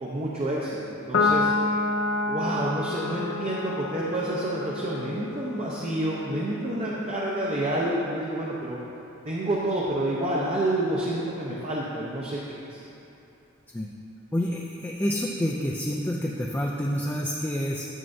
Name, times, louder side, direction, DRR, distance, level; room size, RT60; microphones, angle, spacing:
voice 1, 0.0-1.5 2.2-8.8 9.2-12.8, right 1 dB, 30° right, -5 dB, 0.7 m, -29 dB
Piano, 1.1-7.8, left 3 dB, 60° left, 0.6 m, -29 dB
voice 2, 14.3-17.9, equal, 10° left, -3 dB, 0.4 m, -28 dB
11.0 x 6.8 x 2.7 m, 2.9 s
head